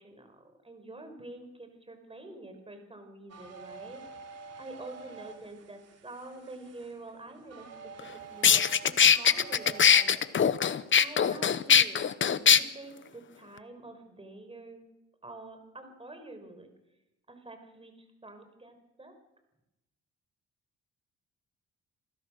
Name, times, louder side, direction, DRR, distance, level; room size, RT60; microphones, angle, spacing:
voice 1, 0.0-4.0 4.6-7.7 8.3-10.3 10.9-12.0 12.4-14.8 15.2-16.7 17.3-19.1, right 2 dB, 20° right, 7 dB, 5.0 m, -47 dB
sound 1, 3.3-10.1, right 5 dB, 55° right, 3.3 m, -48 dB
sound 2, 8.0-8.1 8.4-12.6, left 7 dB, 40° left, 1.0 m, -21 dB
27.5 x 16.0 x 6.5 m, 0.94 s
cardioid pair, 90°, 30 cm